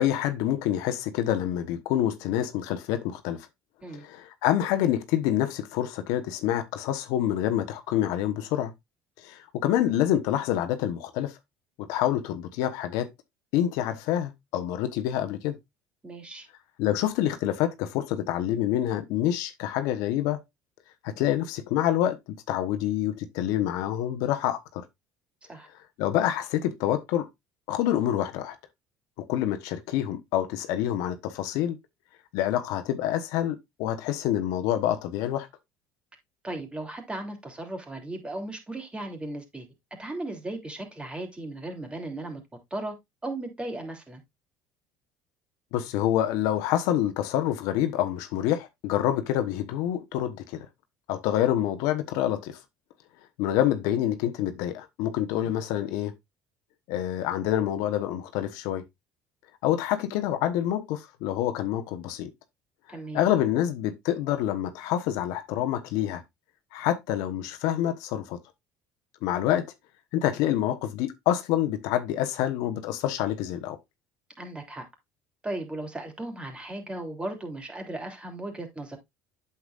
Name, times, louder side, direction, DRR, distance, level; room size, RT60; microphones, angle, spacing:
voice 1, 0.0-3.5 3.9-8.7 9.2-11.3 11.8-13.1 13.5-15.6 16.8-20.4 21.0-22.2 22.5-24.8 26.0-27.3 27.7-28.5 29.3-31.8 32.3-35.5 45.7-50.7 51.1-52.6 53.4-56.1 56.9-58.8 59.6-62.3 63.1-66.2 66.7-68.4 69.2-69.6 70.1-73.8, left 11 dB, 75° left, 1.1 m, -27 dB
voice 2, 16.0-16.5 25.5-25.7 36.4-39.7 40.0-42.4 42.7-42.9 43.2-44.2 55.4-55.5 62.9-63.3 74.4-74.8 75.4-79.0, right 2 dB, 15° right, 3.0 m, -36 dB
8.2 x 7.1 x 2.5 m
supercardioid pair, 90°, 6 cm